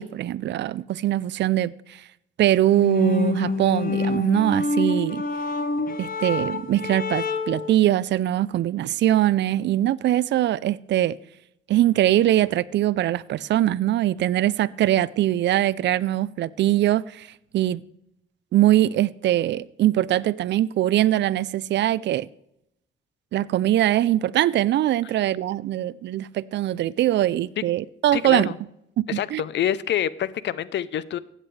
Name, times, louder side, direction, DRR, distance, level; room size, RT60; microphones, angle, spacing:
voice 1, 0.0-2.0 2.4-5.2 6.0-11.2 11.7-17.3 17.5-17.8 18.5-22.3 23.3-28.5 29.0-29.1 29.3-29.4, right 13 dB, 65° right, 0.5 m, -22 dB
sound 1, 2.7-7.7, left 3 dB, 45° left, 1.1 m, -27 dB
voice 2, 28.1-28.6 29.1-31.2, left 10 dB, 65° left, 0.6 m, -26 dB
15.5 x 9.1 x 3.3 m
cardioid pair, 90°, 20 cm